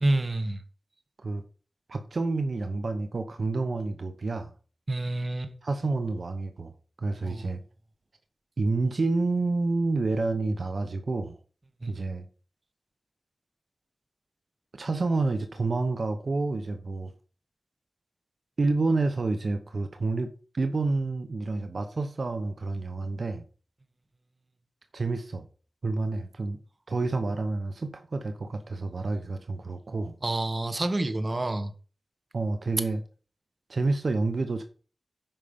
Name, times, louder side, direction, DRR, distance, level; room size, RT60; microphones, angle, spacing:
voice 1, 0.0-0.6 4.9-5.5 7.2-7.5 11.8-11.9 30.2-31.7, right 2 dB, 45° right, 1.2 m, -28 dB
voice 2, 1.9-4.5 5.6-6.7 7.0-7.6 8.6-11.4 11.9-12.2 14.8-17.1 18.6-23.4 24.9-25.5 25.8-26.6 26.9-30.1 32.3-33.0 33.7-34.6, right 3 dB, 70° right, 0.9 m, -29 dB
9.0 x 5.7 x 5.1 m
wide cardioid pair, 65°, 0 cm